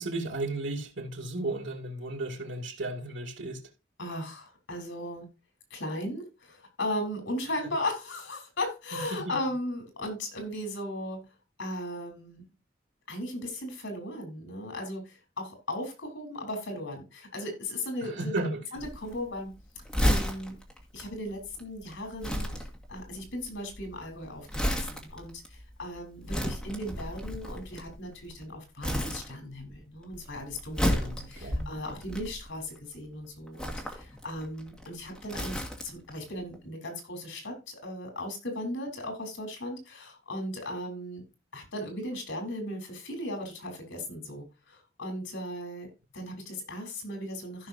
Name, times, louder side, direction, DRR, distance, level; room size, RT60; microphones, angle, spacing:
voice 1, 0.0-3.6 8.9-9.3 18.0-18.6 30.9-31.7, right 2 dB, 80° right, 2.4 m, -34 dB
voice 2, 4.0-5.3 5.7-11.3 11.6-12.4 13.1-18.4 18.7-19.6 20.0-20.6 20.9-41.2 41.5-45.9 46.1-47.7, left 1 dB, 80° left, 4.0 m, -37 dB
Crumpling crinkling, 18.8-28.4 28.8-29.8 30.0-32.8 33.5-36.1 36.4-36.5, equal, 5° left, 1.9 m, -32 dB
15.0 x 5.8 x 2.7 m
head